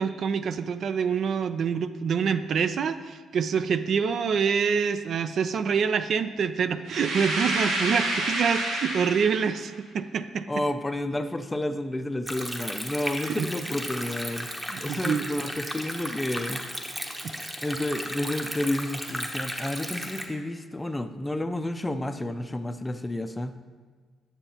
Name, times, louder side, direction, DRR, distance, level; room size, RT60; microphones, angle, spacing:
voice 1, 0.0-10.6 13.2-13.5 14.7-15.3 17.2-17.4, right 6 dB, 60° right, 11 dB, 0.3 m, -26 dB
sound 1, 6.9-9.6, right 2 dB, 85° right, 1.2 m, -28 dB
voice 2, 10.5-14.5 14.8-16.7 17.6-23.6, left 1 dB, 15° left, 9 dB, 0.4 m, -30 dB
Stream, 12.3-20.3, equal, 10° right, 0.8 m, -35 dB
9.0 x 6.7 x 2.8 m, 1.5 s
cardioid pair, 90°, 0 cm